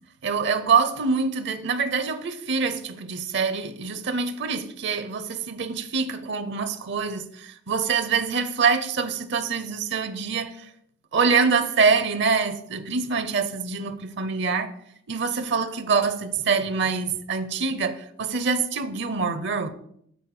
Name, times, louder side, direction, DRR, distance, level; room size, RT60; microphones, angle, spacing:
voice 1, 0.2-10.7 11.1-14.7 15.1-19.7, right 5 dB, 60° right, 0.7 m, -25 dB
9.2 x 4.3 x 4.8 m
head